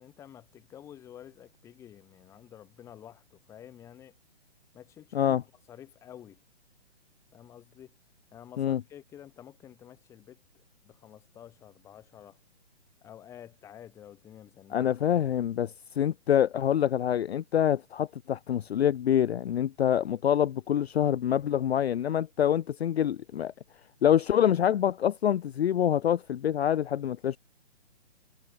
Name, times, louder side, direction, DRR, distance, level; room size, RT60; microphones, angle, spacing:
voice 1, 0.0-4.1 4.7-5.4 5.7-6.4 7.3-8.0 8.3-12.4 13.0-15.2, left 10 dB, 10° left, 2.1 m, -50 dB
voice 2, 14.7-15.7 16.0-23.5 24.0-27.4, left 10 dB, 65° left, 0.5 m, -26 dB
hypercardioid pair, 170°, 35 cm